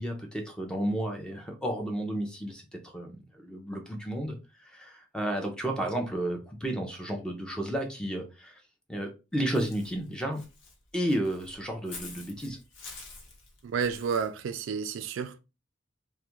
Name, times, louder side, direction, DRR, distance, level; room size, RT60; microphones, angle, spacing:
voice 1, 0.0-8.6 8.9-10.4 10.9-12.6, right 1 dB, 5° left, 0.5 m, -32 dB
Walk footsteps / Bird, 9.5-14.3, left 3 dB, 70° left, 0.8 m, -47 dB
voice 2, 13.6-15.4, right 6 dB, 75° right, 0.3 m, -31 dB
2.3 x 2.1 x 2.9 m
head